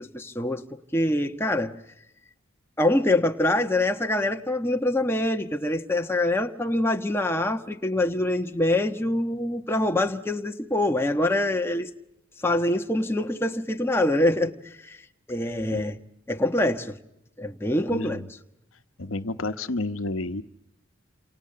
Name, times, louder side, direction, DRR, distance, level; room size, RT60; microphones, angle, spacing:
voice 1, 0.0-1.7 2.8-11.9 12.4-15.0 15.3-16.0 16.3-17.0 17.4-18.2, left 1 dB, 10° left, 1.3 m, -25 dB
voice 2, 17.9-18.3 19.0-20.4, left 2 dB, 75° left, 1.1 m, -30 dB
29.0 x 28.0 x 6.8 m
head